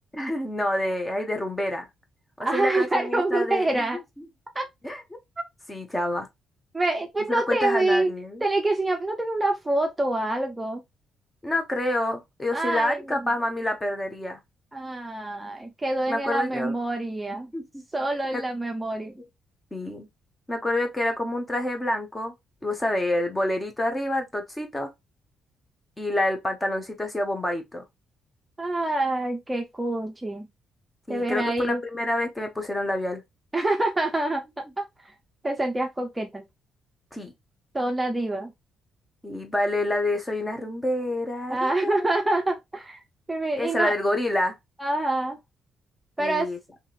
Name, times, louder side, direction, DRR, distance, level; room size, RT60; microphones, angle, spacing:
voice 1, 0.1-1.9 2.4-3.8 4.8-5.0 5.7-6.3 7.3-8.4 11.4-14.4 16.1-16.7 17.5-17.8 18.3-18.4 19.2-19.3 19.7-20.1 20.5-22.3 22.6-24.9 26.0-27.8 31.1-33.2 37.1-37.3 39.2-42.1 43.6-44.6 46.2-46.6, left 1 dB, 15° left, 0.9 m, -28 dB
voice 2, 2.4-4.0 4.5-4.7 6.7-8.1 8.4-10.8 12.5-13.3 14.7-17.5 17.9-19.1 28.6-30.5 31.1-31.8 33.5-34.8 35.4-36.4 37.7-38.5 41.5-43.0 43.3-43.9 44.8-45.4 46.2-46.5, right 2 dB, 15° right, 0.6 m, -26 dB
2.9 x 2.8 x 2.4 m
cardioid pair, 90°, 0 cm